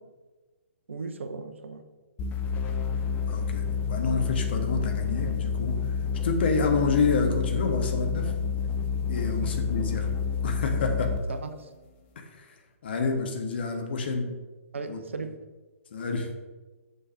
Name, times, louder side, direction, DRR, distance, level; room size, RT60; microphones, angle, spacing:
voice 1, 0.9-1.8 9.4-9.6 11.3-11.7 14.7-15.4, right 4 dB, 60° right, 1.0 m, -37 dB
sound 1, 2.2-11.3, left 6 dB, 20° left, 0.9 m, -29 dB
voice 2, 3.3-3.6 3.9-5.8 6.2-8.3 9.1-10.1 10.4-11.2 12.1-12.4 12.8-14.3 14.9-15.0 15.9-16.3, left 4 dB, 45° left, 1.6 m, -28 dB
7.7 x 6.4 x 6.0 m
figure-of-eight pair, 125°, 8 cm